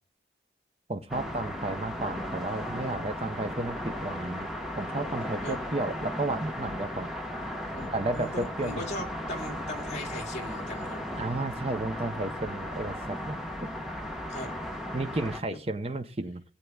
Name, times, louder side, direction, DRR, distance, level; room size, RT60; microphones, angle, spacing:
voice 1, 0.9-4.5 4.8-7.1 7.9-9.1 11.2-13.8 14.9-16.4, right 2 dB, 35° right, 8 dB, 0.6 m, -33 dB
sound 1, 1.1-15.4, equal, ahead, 1.1 m, -36 dB
voice 2, 7.7-11.0 14.3-14.5, left 1 dB, 40° left, -1 dB, 2.1 m, -38 dB
19.0 x 8.3 x 2.3 m, 0.41 s
head